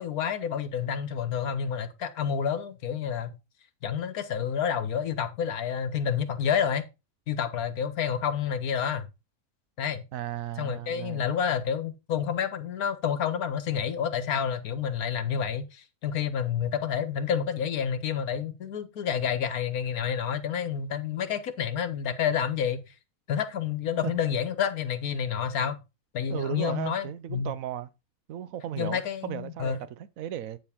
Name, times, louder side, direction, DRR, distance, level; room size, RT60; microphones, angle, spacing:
voice 1, 0.0-3.3 3.8-6.8 7.3-9.1 9.8-10.0 10.6-22.8 23.3-25.8 26.1-27.5 28.8-29.8, left 8 dB, 70° left, 1.5 m, -29 dB
voice 2, 10.1-11.3 24.0-24.1 26.3-27.9 28.3-30.6, right 11 dB, 65° right, 1.1 m, -35 dB
8.7 x 7.2 x 3.5 m
omnidirectional pair, 1.6 m